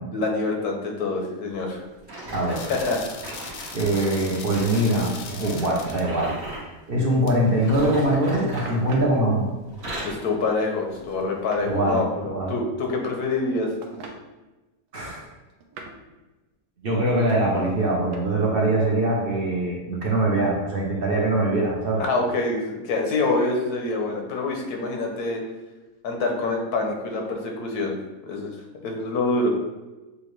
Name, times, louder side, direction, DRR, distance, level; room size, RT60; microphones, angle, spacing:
voice 1, 0.1-1.8 2.7-3.3 10.0-13.7 22.0-25.4 26.0-28.0 28.2-28.5 28.8-29.5, left 3 dB, 85° left, 1 dB, 1.4 m, -26 dB
sound 1, 2.1-6.7 7.5-9.3 9.6-10.3 10.9-11.1 11.7-11.8, right 1 dB, 70° right, 1.6 m, -37 dB
voice 2, 2.3-2.6 3.7-6.4 6.9-9.5 11.6-12.5 14.9-15.2 16.8-22.0, right 1 dB, 50° right, -3 dB, 0.8 m, -23 dB
sound 2, 2.5-6.0 7.3-7.4, left 5 dB, 65° left, 0.8 m, -39 dB
sound 3, 7.4-8.2 8.6-9.2 10.0-10.7 10.9-11.7 12.8-13.5 13.8-14.2 15.0-16.1 17.3-18.2, right 3 dB, 85° right, 1.1 m, -42 dB
6.6 x 2.5 x 3.1 m, 1.1 s
omnidirectional pair, 1.6 m